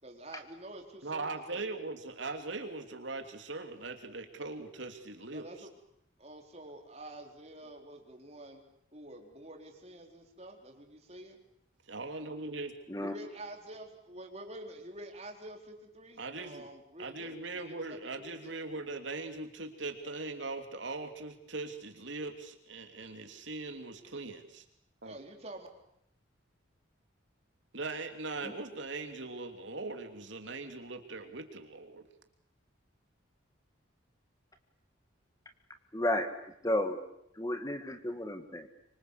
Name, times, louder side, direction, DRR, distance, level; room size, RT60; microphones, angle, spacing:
voice 1, 0.0-1.7 5.3-5.7 6.2-8.6 8.9-11.4 13.0-18.6 25.0-25.7, right 1 dB, 30° right, 3 dB, 4.2 m, -48 dB
voice 2, 1.0-5.4 11.9-12.7 16.2-16.7 17.0-24.6 25.0-25.1 27.7-32.0, right 3 dB, 70° right, 6 dB, 3.1 m, -40 dB
voice 3, 35.9-36.3 36.6-37.0 37.4-38.7, left 1 dB, 15° left, 7 dB, 1.9 m, -32 dB
25.5 x 25.5 x 8.2 m, 0.75 s
head